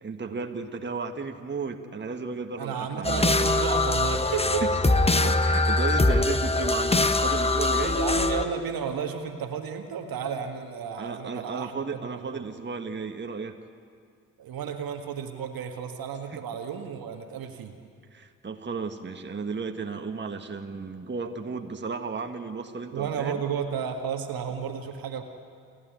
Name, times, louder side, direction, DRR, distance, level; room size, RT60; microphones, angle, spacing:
voice 1, 0.0-3.5 4.6-4.7 5.2-8.0 11.0-13.6 16.3-16.4 18.1-23.4, right 4 dB, 25° right, 5 dB, 1.6 m, -34 dB
voice 2, 2.5-4.6 7.9-12.5 14.4-17.7 22.9-25.3, right 7 dB, 60° right, 5 dB, 1.8 m, -32 dB
sound 1, 3.0-8.5, left 2 dB, 15° left, 1.2 m, -23 dB
29.0 x 11.0 x 9.3 m, 2.2 s
hypercardioid pair, 40°, 40 cm